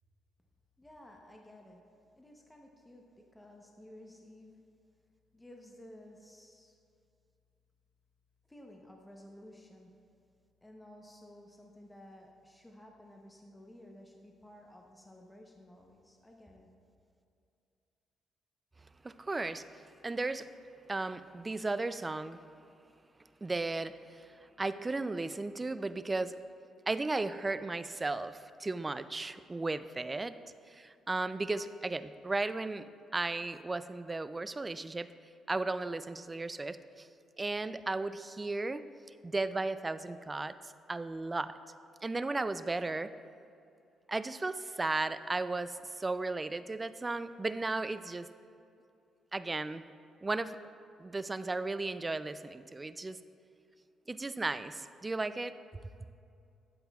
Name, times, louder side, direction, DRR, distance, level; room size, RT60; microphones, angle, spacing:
voice 1, 0.8-1.8 2.1-4.6 5.3-6.7 8.5-9.9 10.6-16.7, left 1 dB, 10° left, 1 dB, 0.8 m, -54 dB
voice 2, 19.0-19.7 20.0-20.5 20.9-22.4 23.4-24.2 24.6-26.4 26.9-30.4 30.7-32.9 33.1-35.1 35.5-37.1 37.4-38.8 39.2-41.5 42.0-43.1 44.1-48.3 49.3-49.8 50.2-50.6 51.0-53.2 54.1-55.5, right 3 dB, 20° right, 13 dB, 0.3 m, -35 dB
12.5 x 7.8 x 2.3 m, 2.5 s
cardioid pair, 90°, 0 cm